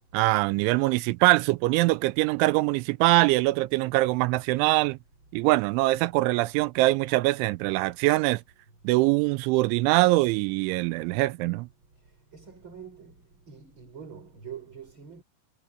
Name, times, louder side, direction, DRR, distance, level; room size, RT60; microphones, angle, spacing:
voice 1, 0.1-5.0 5.3-8.4 8.8-11.7, right 20 dB, 85° right, 2.9 m, -23 dB
voice 2, 12.3-13.2 13.5-15.2, right 7 dB, 25° right, 6.1 m, -44 dB
omnidirectional pair, 5.6 m